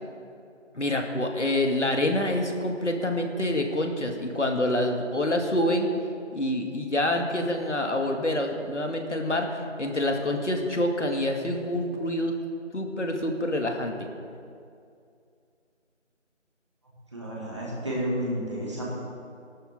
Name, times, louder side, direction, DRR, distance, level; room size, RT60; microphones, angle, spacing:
voice 1, 0.7-5.9 6.3-12.4 12.7-14.1, left 1 dB, 70° left, 3 dB, 2.2 m, -27 dB
voice 2, 17.1-18.8, equal, 25° right, -5 dB, 2.2 m, -31 dB
19.0 x 12.5 x 3.7 m, 2.4 s
figure-of-eight pair, 170°, 37 cm